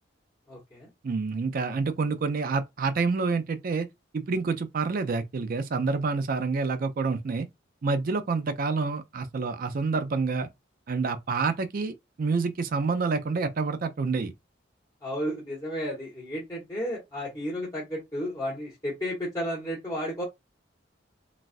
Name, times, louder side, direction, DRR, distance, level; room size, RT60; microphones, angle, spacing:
voice 1, 0.5-0.9 15.0-20.2, equal, 20° left, 1.1 m, -33 dB
voice 2, 1.0-3.9 4.1-7.5 7.8-10.5 10.9-14.3, right 4 dB, 50° right, 0.4 m, -28 dB
3.9 x 2.4 x 2.4 m
head